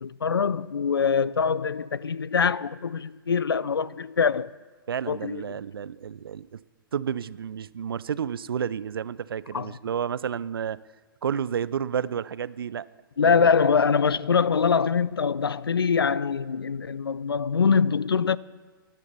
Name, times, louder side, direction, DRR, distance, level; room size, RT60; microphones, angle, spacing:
voice 1, 0.0-4.5 5.1-5.4 9.5-9.7 13.2-18.4, left 6 dB, 90° left, 0.4 m, -23 dB
voice 2, 4.9-6.6 6.9-10.8 11.2-12.9 13.2-13.5, right 8 dB, 75° right, 0.4 m, -31 dB
13.5 x 10.5 x 5.5 m
figure-of-eight pair, 115°, 12 cm